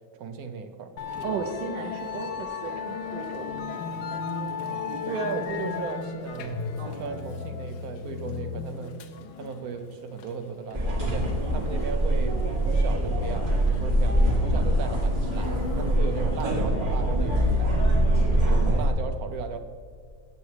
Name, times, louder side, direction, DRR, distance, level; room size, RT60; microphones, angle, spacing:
voice 1, 0.1-0.9 5.1-9.0 9.4-11.3 11.5-17.7 18.3-19.6, right 5 dB, 65° right, 7 dB, 1.0 m, -36 dB
Musical instrument, 1.0-16.5, left 6 dB, 90° left, 1.4 m, -36 dB
voice 2, 1.2-4.1 4.9-5.3 6.8-7.6, right 5 dB, 80° right, 4 dB, 1.3 m, -37 dB
sound 1, 10.7-18.9, right 1 dB, 30° right, 2.0 m, -23 dB
15.0 x 8.2 x 3.3 m, 2.2 s
omnidirectional pair, 1.9 m